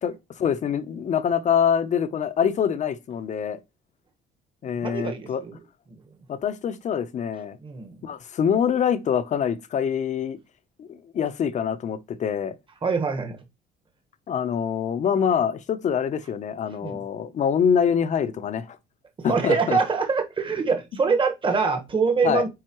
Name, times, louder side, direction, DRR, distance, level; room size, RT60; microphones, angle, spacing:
voice 1, 0.0-3.6 4.6-5.4 6.3-7.6 8.0-10.4 10.8-12.6 14.3-18.8 19.2-19.8 22.2-22.4, left 7 dB, 45° left, 0.8 m, -25 dB
voice 2, 4.8-5.5 5.9-6.0 7.6-8.0 12.8-13.4 16.8-17.0 19.2-22.5, right 5 dB, 30° right, 1.5 m, -24 dB
9.4 x 4.2 x 3.0 m
cardioid pair, 110°, 17 cm